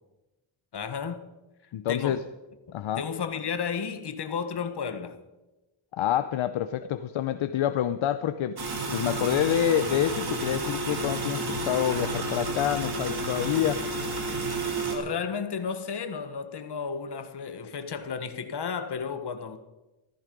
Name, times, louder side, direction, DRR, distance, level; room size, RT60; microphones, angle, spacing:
voice 1, 0.7-1.3 1.9-2.2 3.0-5.2 14.9-19.6, left 6 dB, 55° left, 1.4 m, -33 dB
voice 2, 1.7-2.2 2.7-3.0 5.9-8.6 8.9-13.8, left 10 dB, 70° left, 0.8 m, -27 dB
sound 1, 8.6-15.0, right 2 dB, 50° right, 3.2 m, -31 dB
14.5 x 14.5 x 5.3 m
wide cardioid pair, 105°, 49 cm